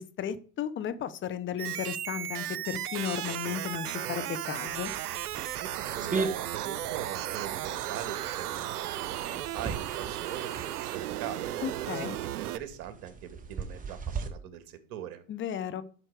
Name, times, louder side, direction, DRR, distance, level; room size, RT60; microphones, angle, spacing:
voice 1, 0.0-4.9 11.6-12.2 15.3-15.8, left 9 dB, 25° left, 13 dB, 1.0 m, -34 dB
sound 1, 1.6-12.6, right 12 dB, 90° right, 0.7 m, -35 dB
sound 2, 4.7-14.3, right 4 dB, 20° right, 1.4 m, -39 dB
voice 2, 5.6-10.5 10.8-11.5 11.9-15.2, right 10 dB, 50° right, 9 dB, 2.0 m, -41 dB
11.5 x 6.3 x 4.8 m, 0.41 s
hypercardioid pair, 115°, 44 cm